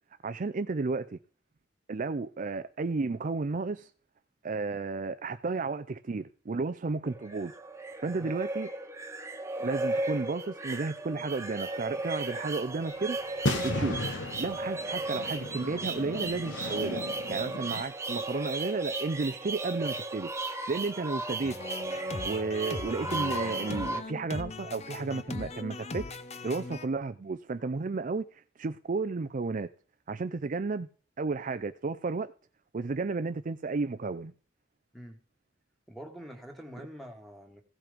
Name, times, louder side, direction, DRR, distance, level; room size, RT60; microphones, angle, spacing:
voice 1, 0.2-1.2 1.9-3.9 4.4-7.5 8.0-8.7 9.6-13.2 13.6-14.0 14.4-17.0 17.3-20.3 20.7-21.6 22.2-26.2 26.4-29.7 30.1-30.9 31.2-32.3 32.7-34.3, right 3 dB, 45° right, 0.5 m, -32 dB
sound 1, 7.0-24.0, right 2 dB, 15° right, 0.9 m, -35 dB
sound 2, 12.7-12.8 13.0-13.1 13.4-17.8, left 2 dB, 75° left, 1.4 m, -35 dB
sound 3, 21.4-26.9, left 3 dB, 35° left, 0.8 m, -39 dB
voice 2, 35.9-37.6, equal, ahead, 1.9 m, -45 dB
15.5 x 5.8 x 5.1 m
head